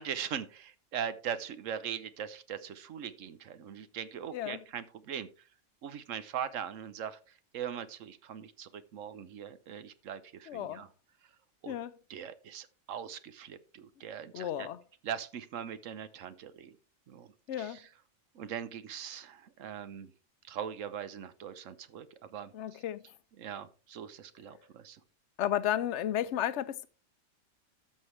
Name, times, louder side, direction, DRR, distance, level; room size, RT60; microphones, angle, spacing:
voice 1, 0.0-5.3 5.8-7.2 7.5-10.9 11.6-11.8 12.1-14.7 15.0-16.8 17.1-17.3 17.6-17.9 18.3-20.1 20.5-22.5 23.4-25.0, right 8 dB, 80° right, 1.1 m, -40 dB
voice 2, 10.5-10.8 11.7-11.9 14.3-14.8 17.5-17.8 22.5-23.0 24.5-24.6 25.4-26.9, left 11 dB, 70° left, 0.9 m, -33 dB
13.0 x 6.4 x 3.2 m
omnidirectional pair, 1.3 m